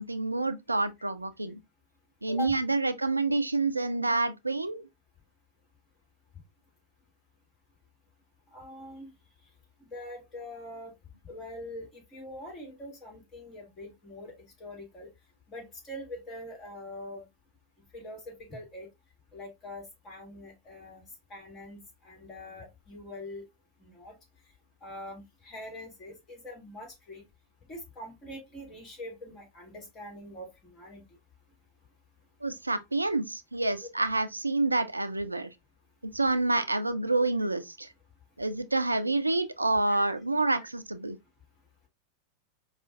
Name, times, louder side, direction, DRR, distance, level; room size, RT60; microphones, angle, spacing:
voice 1, 0.0-1.6 2.2-4.8 32.4-35.5 36.0-37.9 38.4-41.2, right 2 dB, 80° right, 0.3 m, -28 dB
voice 2, 8.5-9.1 9.9-10.9 11.2-14.3 14.6-15.1 15.5-17.2 17.9-18.9 19.3-21.0 21.3-23.4 23.8-24.1 24.8-27.2 27.7-31.0 33.8-33.9 39.9-40.1, left 1 dB, 25° left, 1.9 m, -43 dB
4.9 x 2.4 x 2.3 m
figure-of-eight pair, 90°, 0 cm